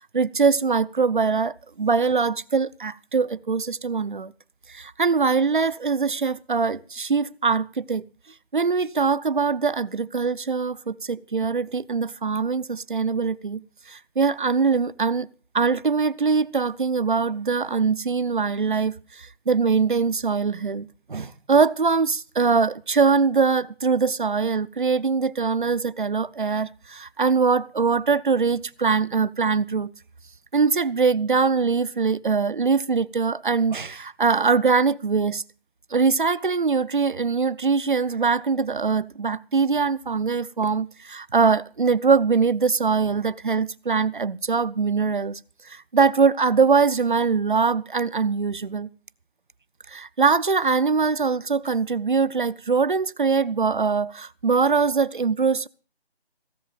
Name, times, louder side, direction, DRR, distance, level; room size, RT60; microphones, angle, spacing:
voice 1, 0.1-4.3 4.7-8.0 8.5-13.6 13.9-15.3 15.5-29.9 30.5-35.4 35.9-45.4 45.7-48.9 49.9-55.7, right 5 dB, 50° right, 0.6 m, -22 dB
16.5 x 7.2 x 7.3 m
figure-of-eight pair, 170°, 31 cm